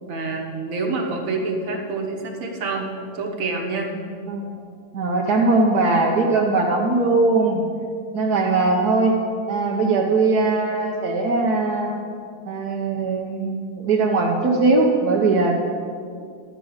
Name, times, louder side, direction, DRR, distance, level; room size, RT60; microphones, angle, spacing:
voice 1, 0.0-3.9 8.4-8.5, right 3 dB, 55° right, 0 dB, 1.6 m, -27 dB
voice 2, 4.3-4.6 4.9-7.6 8.1-9.1 9.5-12.0 12.5-15.5, right 3 dB, 70° right, -1 dB, 1.4 m, -20 dB
12.0 x 4.8 x 7.8 m, 2.3 s
omnidirectional pair, 1.8 m